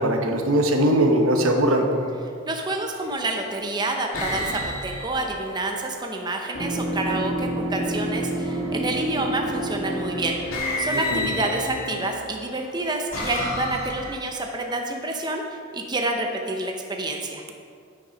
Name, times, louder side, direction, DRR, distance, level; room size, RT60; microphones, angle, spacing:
voice 1, 0.0-1.9 11.1-11.2, right 1 dB, 85° right, 3 dB, 1.0 m, -20 dB
sound 1, 1.9-2.2 3.0-3.5 4.1-6.2 8.4-8.9 10.0-10.1 10.5-12.1 12.7-14.4, left 1 dB, 90° left, 1.8 m, -32 dB
voice 2, 2.5-10.4 10.8-17.4, right 2 dB, 20° right, 2 dB, 0.6 m, -28 dB
sound 2, 6.5-12.3, right 1 dB, 55° left, 1.8 m, -29 dB
9.2 x 6.2 x 5.1 m, 2.3 s
head